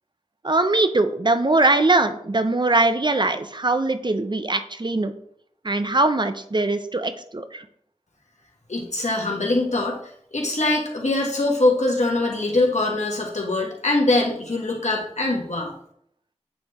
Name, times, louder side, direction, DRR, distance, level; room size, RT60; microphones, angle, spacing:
voice 1, 0.4-5.1 5.6-7.6, right 2 dB, 40° right, 9 dB, 0.5 m, -21 dB
voice 2, 8.7-10.0 10.3-15.7, left 2 dB, 80° left, -1 dB, 1.4 m, -23 dB
8.8 x 3.3 x 3.5 m, 0.67 s
wide cardioid pair, 45°, 12 cm